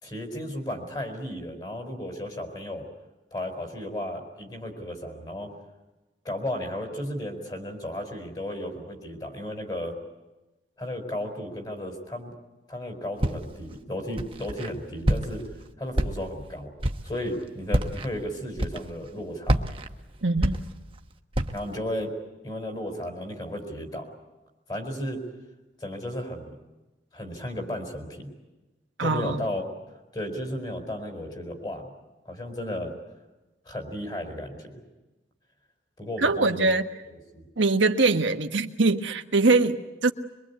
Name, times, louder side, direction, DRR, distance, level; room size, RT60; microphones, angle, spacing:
voice 1, 0.0-2.8 3.3-5.5 6.2-10.0 10.8-12.3 12.7-15.5 15.8-16.7 17.0-19.6 21.5-22.1 22.4-24.0 24.7-25.2 25.8-26.5 27.1-28.3 29.0-29.6 30.1-31.9 32.2-32.9 33.6-34.8 36.0-36.7 37.3-37.4, left 1 dB, 20° left, 5 dB, 4.7 m, -34 dB
Walk footsteps, 13.2-13.7 14.2-14.7 15.0-15.5 15.9-16.4 16.8-17.2 17.7-18.1 18.6-19.1 19.4-21.0 21.3-21.7, right 1 dB, 30° right, 1.1 m, -27 dB
voice 2, 20.2-20.6 29.0-29.4 36.2-36.8 37.6-40.1, right 3 dB, 85° right, 7 dB, 1.4 m, -23 dB
24.0 x 23.0 x 8.4 m, 1.1 s
head